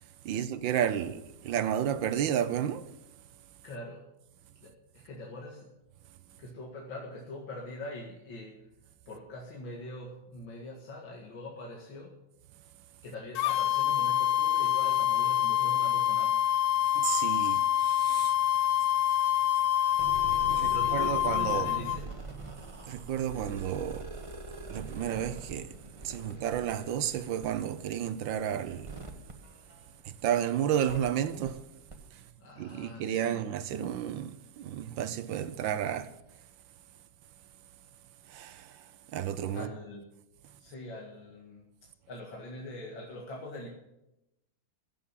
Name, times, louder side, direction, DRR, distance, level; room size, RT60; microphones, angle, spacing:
voice 1, 0.2-2.8 16.9-18.3 20.5-21.7 22.9-24.1 24.7-25.7 26.0-29.0 30.0-31.6 32.6-36.1 38.3-38.7 39.1-39.7, right 10 dB, 70° right, 1.4 m, -32 dB
voice 2, 3.6-4.1 4.6-5.7 6.4-8.6 9.1-12.2 13.0-16.5 20.7-22.2 26.2-26.3 32.4-33.4 39.5-40.0 40.6-41.7 42.1-43.7, left 1 dB, 65° left, 2.6 m, -43 dB
sound 1, 13.3-22.0, left 12 dB, 85° left, 1.6 m, -26 dB
sound 2, 19.9-30.3 30.9-31.0 31.5-31.6 31.9-32.0, right 3 dB, 15° right, 1.3 m, -43 dB
16.5 x 7.3 x 7.4 m
omnidirectional pair, 2.3 m